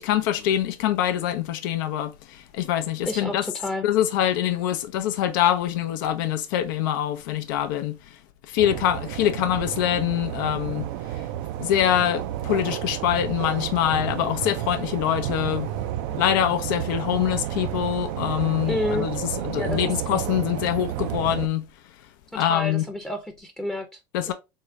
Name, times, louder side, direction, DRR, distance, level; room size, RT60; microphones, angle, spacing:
voice 1, 0.0-3.4 3.8-8.2 8.5-11.2 11.6-15.7 16.1-21.7 22.3-22.8 24.1-24.3, left 11 dB, 75° left, 0.4 m, -24 dB
voice 2, 3.1-3.9 18.7-19.1 19.6-19.8 22.4-24.0, left 2 dB, 5° left, 0.6 m, -29 dB
sound 1, 8.6-21.5, right 12 dB, 70° right, 0.4 m, -31 dB
3.6 x 2.1 x 3.3 m
hypercardioid pair, 85°, 11 cm